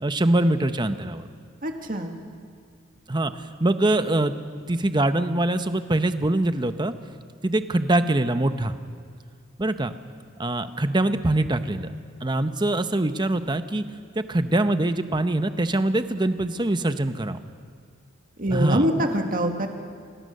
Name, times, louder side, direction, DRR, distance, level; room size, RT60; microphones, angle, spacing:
voice 1, 0.0-1.3 3.1-4.3 4.7-6.9 7.4-8.8 9.6-9.9 10.4-11.9 12.2-13.8 14.2-17.4 18.5-18.9, right 1 dB, 20° right, 10 dB, 0.8 m, -23 dB
voice 2, 1.6-2.1 18.4-19.7, equal, 45° right, 4 dB, 2.0 m, -24 dB
27.0 x 19.0 x 6.7 m, 2.1 s
head